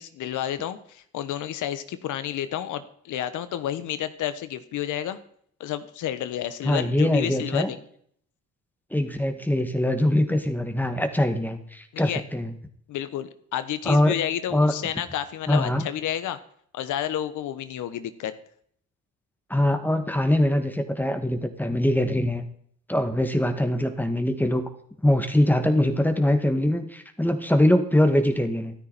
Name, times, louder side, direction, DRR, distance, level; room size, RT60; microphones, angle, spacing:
voice 1, 0.0-5.2 5.6-7.8 11.9-12.2 12.9-16.4 16.7-18.3, left 11 dB, 80° left, 12 dB, 1.2 m, -30 dB
voice 2, 6.6-7.7 8.9-12.5 13.9-14.1 14.5-14.7 15.5-15.9 19.5-22.5 22.9-24.7 25.0-28.7, left 1 dB, 5° left, 7 dB, 1.9 m, -23 dB
13.5 x 12.5 x 4.3 m, 0.64 s
cardioid pair, 90°, 30 cm